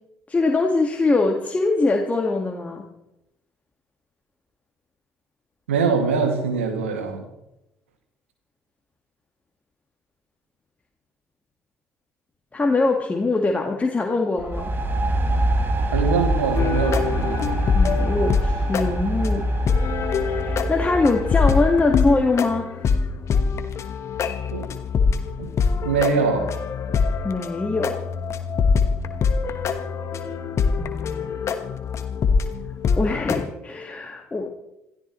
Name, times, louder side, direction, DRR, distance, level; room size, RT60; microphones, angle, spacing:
voice 1, 0.3-2.9 12.5-14.7 17.7-19.5 20.2-22.8 27.2-28.0 30.8-31.4 33.0-34.5, left 3 dB, 20° left, 1 dB, 1.9 m, -23 dB
voice 2, 5.7-7.2 15.9-17.5 24.5-24.6 25.4-25.5 25.8-26.6, right 5 dB, 80° right, 4 dB, 2.3 m, -23 dB
sound 1, 14.4-22.1, right 1 dB, 30° right, 2.3 m, -25 dB
sound 2, 16.5-33.4, left 5 dB, 45° left, 1.3 m, -24 dB
27.0 x 14.5 x 3.2 m, 0.89 s
figure-of-eight pair, 55°, 7 cm